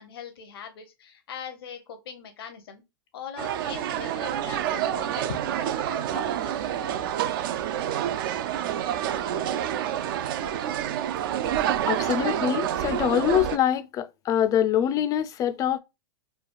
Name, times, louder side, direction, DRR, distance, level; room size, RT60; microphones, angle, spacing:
voice 1, 0.0-2.8 3.1-7.1, left 6 dB, 75° left, 0.7 m, -41 dB
sound 1, 3.4-13.6, right 10 dB, 60° right, 0.4 m, -28 dB
voice 2, 11.8-15.8, left 10 dB, 25° left, 0.4 m, -24 dB
3.2 x 2.3 x 2.2 m
hypercardioid pair, 115°, 13 cm